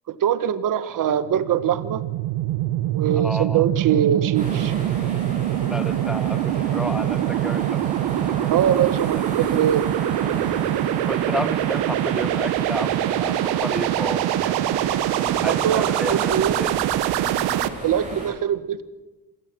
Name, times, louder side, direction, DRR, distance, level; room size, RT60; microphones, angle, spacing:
voice 1, 0.1-2.0 2.8-4.7 8.5-9.9 15.4-16.6 17.8-18.8, right 9 dB, 60° right, 12 dB, 1.4 m, -23 dB
sound 1, 1.2-17.7, right 13 dB, 90° right, 0.9 m, -24 dB
voice 2, 3.1-3.6 5.6-7.8 8.3-8.4 9.4-9.6 11.1-15.1 15.4-16.8, left 1 dB, ahead, 16 dB, 0.6 m, -32 dB
sound 2, 4.3-18.3, right 1 dB, 20° right, 7.5 m, -34 dB
27.0 x 16.5 x 6.2 m, 1.2 s
cardioid pair, 90°, 38 cm